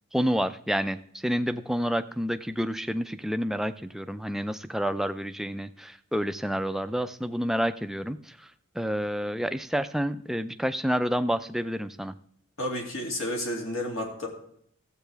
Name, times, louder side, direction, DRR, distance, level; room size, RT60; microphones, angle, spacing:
voice 1, 0.1-8.5 8.8-12.1, equal, ahead, 10 dB, 0.3 m, -29 dB
voice 2, 12.6-14.3, left 1 dB, 80° left, 0 dB, 2.6 m, -31 dB
14.0 x 8.1 x 3.4 m, 0.68 s
head